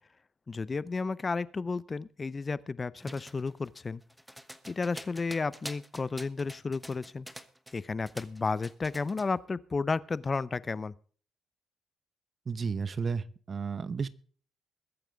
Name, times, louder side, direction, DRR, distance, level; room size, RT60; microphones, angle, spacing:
voice 1, 0.5-4.0 4.7-7.3 7.7-10.9, left 4 dB, 30° left, 19 dB, 0.7 m, -32 dB
sound 1, 3.0-7.8 8.1-9.3, equal, ahead, 1.2 m, -46 dB
voice 2, 12.5-14.1, right 5 dB, 40° right, 16 dB, 0.9 m, -33 dB
21.5 x 9.0 x 3.5 m, 0.43 s
cardioid pair, 90°, 0 cm